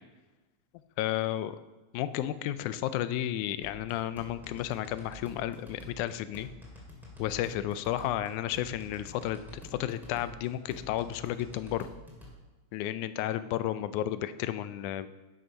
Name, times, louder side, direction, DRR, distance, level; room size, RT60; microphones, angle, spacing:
voice 1, 1.0-1.6 1.9-6.5 7.2-11.9 12.7-15.1, left 12 dB, 90° left, 13 dB, 2.0 m, -32 dB
sound 1, 3.6-12.3, equal, ahead, 1.9 m, -49 dB
11.0 x 6.3 x 5.4 m, 1.2 s
omnidirectional pair, 3.4 m